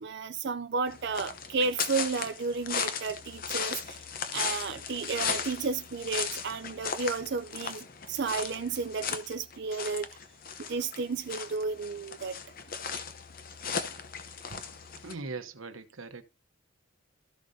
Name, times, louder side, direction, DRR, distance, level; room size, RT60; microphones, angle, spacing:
voice 1, 0.0-4.0 4.3-10.1 10.6-12.4, right 4 dB, 50° right, 0.5 m, -32 dB
sound 1, 0.9-15.1, left 6 dB, 40° left, 0.8 m, -37 dB
voice 2, 15.0-16.2, right 3 dB, 70° right, 1.0 m, -40 dB
13.0 x 6.5 x 2.7 m
head